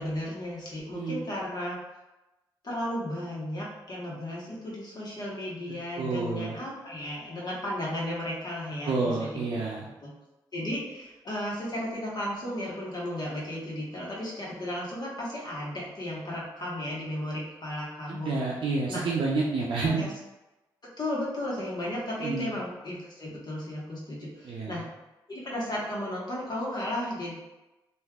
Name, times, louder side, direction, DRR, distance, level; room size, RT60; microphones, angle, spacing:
voice 1, 0.0-1.8 2.6-10.1 10.5-18.4 18.9-19.0 19.8-20.1 20.8-24.9 25.3-27.3, left 1 dB, 50° left, -5 dB, 1.2 m, -34 dB
voice 2, 0.9-1.2 6.0-6.6 8.8-9.9 18.1-20.1 22.2-22.5 24.4-24.8, right 3 dB, 65° right, -4 dB, 0.5 m, -29 dB
3.3 x 2.5 x 2.3 m, 1.0 s
supercardioid pair, 50°, 9 cm